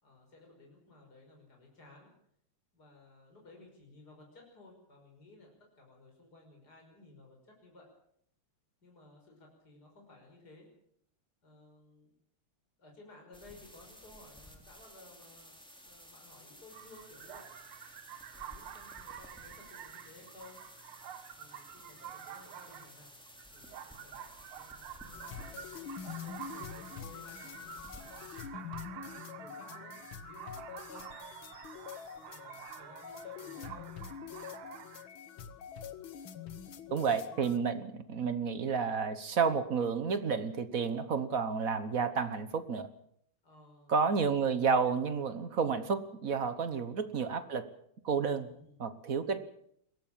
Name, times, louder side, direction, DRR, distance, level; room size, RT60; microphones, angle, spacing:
voice 1, 0.0-2.1 2.7-7.9 8.8-10.7 11.4-12.1 12.8-17.5 18.3-20.6 21.4-23.1 23.5-25.9 26.2-29.9 30.3-31.1 32.0-33.9 36.9-37.7 38.0-38.4 43.4-44.0 46.7-46.9 48.4-48.8 49.2-49.4, left 2 dB, 45° left, 1 dB, 6.3 m, -57 dB
sound 1, 13.3-28.4, equal, ahead, 3.1 m, -54 dB
sound 2, 16.7-35.1, right 10 dB, 80° right, 1.9 m, -49 dB
sound 3, 25.1-37.6, left 8 dB, 70° left, 2.0 m, -45 dB
voice 2, 36.9-42.9 43.9-47.7 48.0-48.5 48.8-49.4, right 5 dB, 45° right, 12 dB, 1.3 m, -31 dB
22.0 x 17.0 x 7.4 m, 0.71 s
omnidirectional pair, 2.4 m